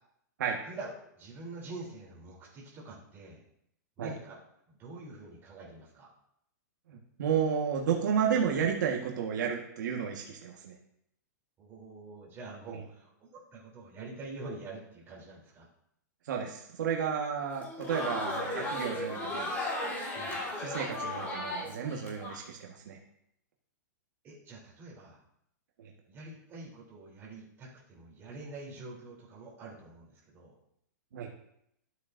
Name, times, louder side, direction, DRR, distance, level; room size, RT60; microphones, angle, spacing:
voice 1, 0.6-3.4 4.0-4.4 4.7-6.1 11.6-15.7 20.1-20.4 24.2-25.2 26.1-30.6, right 2 dB, 20° right, -4 dB, 3.4 m, -46 dB
voice 2, 6.9-10.7 12.7-12.8 16.2-19.5 20.6-23.0 25.8-25.9 31.1-31.3, right 7 dB, 70° right, 0 dB, 1.5 m, -32 dB
Crowd, 17.5-22.4, left 1 dB, 15° left, 3.5 m, -35 dB
13.0 x 8.2 x 2.6 m, 0.75 s
hypercardioid pair, 150°, 10 cm